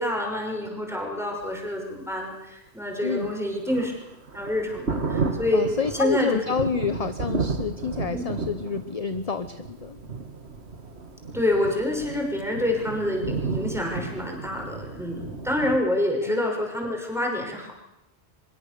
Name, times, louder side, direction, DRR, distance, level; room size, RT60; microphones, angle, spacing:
voice 1, 0.0-3.9 4.3-5.6 5.9-6.4 8.1-8.2 11.3-17.7, left 1 dB, ahead, 1 dB, 5.8 m, -27 dB
Thunder, 2.9-15.8, right 4 dB, 90° right, 2.2 m, -33 dB
voice 2, 3.0-3.3 5.5-10.0 16.3-16.4, left 6 dB, 40° left, 10 dB, 1.0 m, -28 dB
24.0 x 22.5 x 6.9 m, 0.93 s
omnidirectional pair, 1.1 m